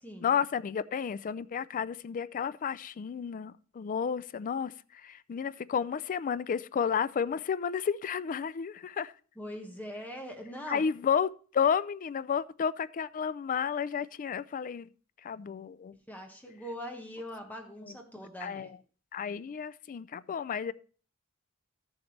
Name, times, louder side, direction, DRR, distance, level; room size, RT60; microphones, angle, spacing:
voice 1, 0.2-9.1 10.7-14.9 15.2-15.9 17.8-17.9 18.4-18.8 19.1-20.7, left 7 dB, 40° left, 0.3 m, -32 dB
voice 2, 9.4-10.8 16.1-18.7, equal, 10° left, 1.4 m, -42 dB
13.5 x 7.1 x 3.3 m
head